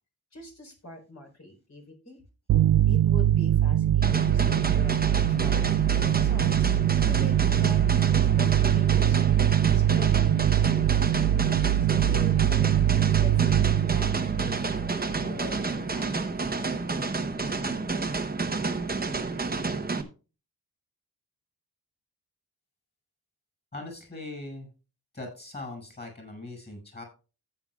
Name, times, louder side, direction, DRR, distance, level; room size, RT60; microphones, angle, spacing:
voice 1, 0.3-2.2 2.9-7.9 8.4-9.4 9.7-12.7 13.2-16.6, left 2 dB, 45° left, 2 dB, 4.3 m, -44 dB
sound 1, 2.5-15.7, right 12 dB, 70° right, 0.5 m, -23 dB
sound 2, 4.0-20.0, right 3 dB, 25° right, 1.0 m, -30 dB
voice 2, 23.7-24.7 25.1-27.0, left 2 dB, 25° left, 3 dB, 5.9 m, -40 dB
15.0 x 8.9 x 2.4 m, 0.33 s
wide cardioid pair, 120°, 36 cm